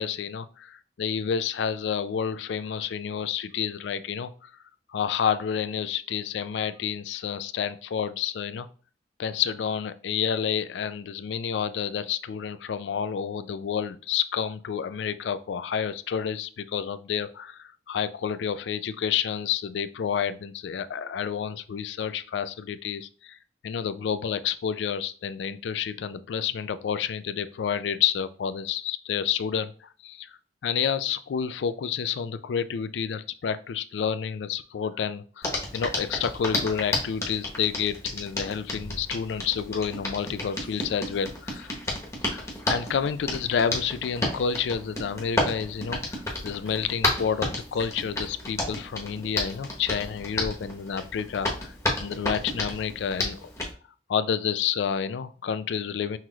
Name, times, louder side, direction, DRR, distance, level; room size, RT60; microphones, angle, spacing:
voice 1, 0.0-4.5 4.9-8.7 9.2-23.4 23.6-30.3 30.6-41.7 42.3-51.7 52.0-53.5 54.1-56.2, left 7 dB, 85° left, 13 dB, 0.4 m, -29 dB
Hands, 35.4-53.7, left 2 dB, 20° left, 1.0 m, -32 dB
5.6 x 3.1 x 2.3 m, 0.40 s
head